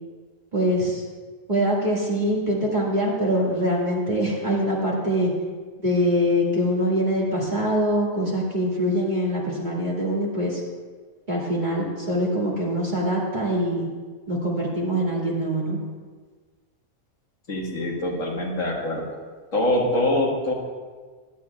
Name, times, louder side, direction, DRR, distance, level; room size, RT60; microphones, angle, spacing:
voice 1, 0.5-1.0 1.5-5.3 5.8-10.6 11.3-13.9 14.3-15.8, equal, 35° right, -4 dB, 2.0 m, -23 dB
voice 2, 17.5-19.1 19.5-20.5, left 1 dB, 65° left, -2 dB, 1.9 m, -24 dB
16.0 x 11.5 x 2.3 m, 1.5 s
omnidirectional pair, 1.5 m